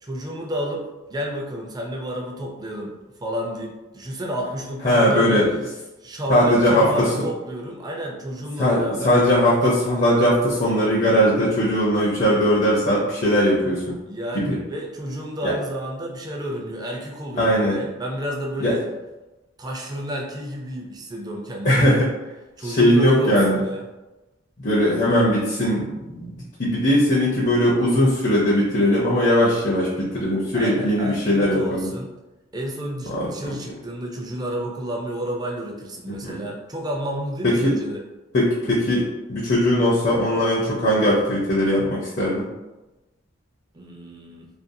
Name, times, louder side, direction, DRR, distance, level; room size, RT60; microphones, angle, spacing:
voice 1, 0.0-0.8 1.1-2.9 3.2-5.5 6.0-9.1 14.1-18.8 19.6-21.9 22.6-23.8 30.5-32.1 32.5-38.0 43.7-44.5, equal, 20° right, 0 dB, 0.4 m, -30 dB
voice 2, 4.8-5.5 6.3-7.1 8.6-14.0 14.3-14.6 15.4-15.5 17.4-17.8 18.6-18.7 21.6-22.1 22.6-23.6 24.6-31.9 33.1-33.5 36.1-36.4 37.4-37.7 38.3-42.5, equal, 40° left, -6 dB, 0.5 m, -20 dB
2.5 x 2.2 x 2.6 m, 1.1 s
head